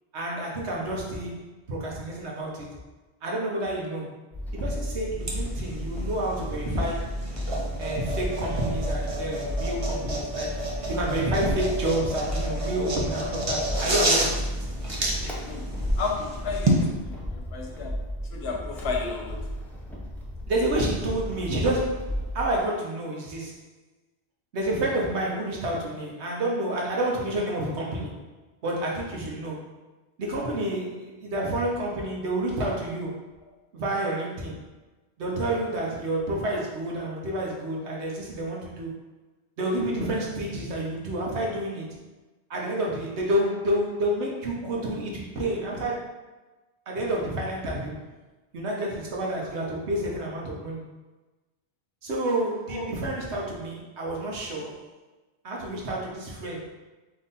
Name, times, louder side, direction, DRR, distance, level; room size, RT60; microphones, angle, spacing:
voice 1, 0.1-1.4 1.7-2.8 3.2-4.2 4.5-7.3 7.8-10.6 10.9-14.7 20.5-23.6 24.5-28.3 28.6-29.7 30.2-33.2 33.7-34.6 35.2-39.0 39.6-42.0 42.5-46.1 46.9-48.1 48.5-50.8 52.0-54.8 55.4-56.7, right 1 dB, 85° right, -2 dB, 1.2 m, -29 dB
sound 1, 4.3-22.6, equal, ahead, 0.5 m, -33 dB
sound 2, 5.2-16.8, right 1 dB, 35° right, 0.7 m, -30 dB
voice 2, 16.0-17.9 18.3-19.4 52.7-52.9, left 4 dB, 70° left, 0 dB, 1.0 m, -32 dB
3.7 x 3.0 x 4.0 m, 1.2 s
omnidirectional pair, 1.1 m